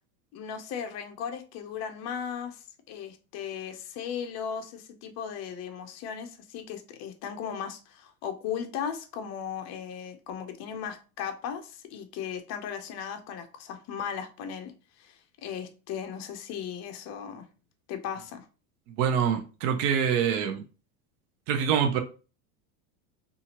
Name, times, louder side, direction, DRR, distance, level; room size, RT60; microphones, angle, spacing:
voice 1, 0.3-17.5 17.9-18.5, left 8 dB, 35° left, 0.5 m, -37 dB
voice 2, 18.9-20.6 21.5-22.0, right 8 dB, 55° right, 0.6 m, -25 dB
2.7 x 2.5 x 2.8 m
supercardioid pair, 135°, 45 cm